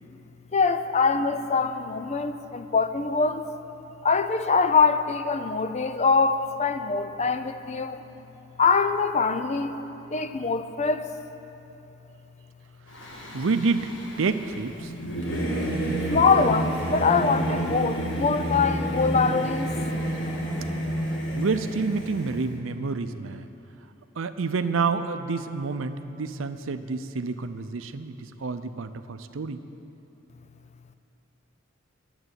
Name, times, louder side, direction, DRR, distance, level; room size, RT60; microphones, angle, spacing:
voice 1, 0.5-3.4 4.0-8.0 8.6-9.7 10.1-11.1 16.1-19.7, left 5 dB, 35° left, 10 dB, 0.5 m, -23 dB
Singing / Musical instrument, 12.9-22.5, right 1 dB, 65° left, 1.9 m, -30 dB
voice 2, 13.3-14.9 21.3-23.5 24.2-29.6, right 4 dB, 75° right, 10 dB, 0.6 m, -28 dB
11.0 x 8.0 x 9.6 m, 3.0 s
head